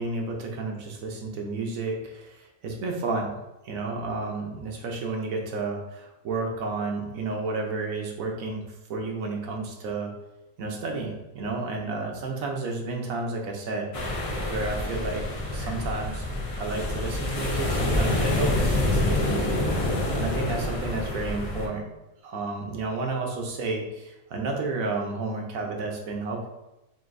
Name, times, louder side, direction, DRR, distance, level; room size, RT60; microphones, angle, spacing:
voice 1, 0.0-3.4 3.6-10.1 10.6-13.9 14.5-15.3 15.5-16.3 16.5-21.9 22.2-26.5, right 3 dB, 80° right, 1 dB, 1.2 m, -31 dB
sound 1, 13.9-21.7, left 1 dB, 45° left, 0.4 m, -27 dB
5.7 x 2.7 x 2.6 m, 0.96 s
omnidirectional pair, 1.4 m